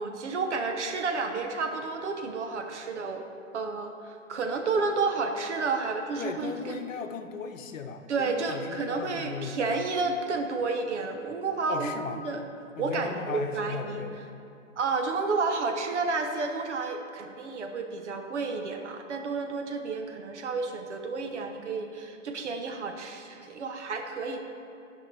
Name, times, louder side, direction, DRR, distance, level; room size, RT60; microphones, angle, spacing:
voice 1, 0.0-3.2 3.5-6.8 8.1-12.4 12.8-14.0 14.8-24.4, right 4 dB, 60° right, 5 dB, 0.9 m, -31 dB
voice 2, 6.2-9.6 11.7-12.3 12.8-14.2, left 6 dB, 80° left, 7 dB, 0.9 m, -37 dB
12.5 x 5.8 x 3.2 m, 2.6 s
hypercardioid pair, 170°, 39 cm